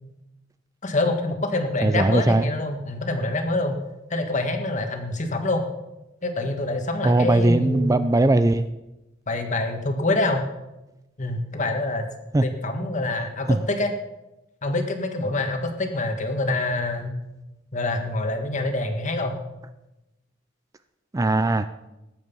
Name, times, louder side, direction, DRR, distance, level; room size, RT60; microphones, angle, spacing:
voice 1, 0.8-3.7 4.1-5.6 6.2-8.0 9.3-10.5 11.2-12.0 12.4-13.9 14.6-17.1 17.7-19.4, left 2 dB, 40° left, 5 dB, 1.7 m, -26 dB
voice 2, 1.8-2.5 7.0-8.7 12.3-12.5 13.5-13.6 21.1-21.7, right 2 dB, 15° right, 11 dB, 0.4 m, -19 dB
19.5 x 8.1 x 5.4 m, 0.98 s
head